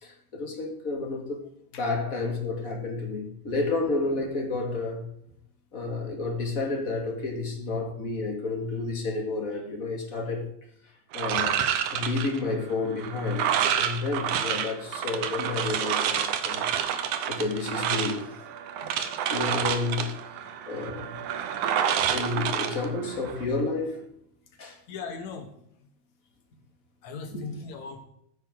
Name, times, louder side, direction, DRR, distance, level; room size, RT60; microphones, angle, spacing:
voice 1, 0.0-1.4 1.7-5.0 5.7-10.5 11.1-11.6 11.9-13.5 13.8-16.6 17.3-18.3 18.8-19.0 19.3-20.1 20.7-21.1 22.1-24.1 24.6-24.8 27.3-27.4, left 3 dB, 30° left, 2.2 m, -30 dB
sound 1, 11.1-23.4, right 9 dB, 75° right, 2.3 m, -29 dB
voice 2, 24.9-25.5 25.8-25.9 27.0-28.1, left 4 dB, 65° left, 2.8 m, -38 dB
14.5 x 9.5 x 3.8 m
omnidirectional pair, 3.7 m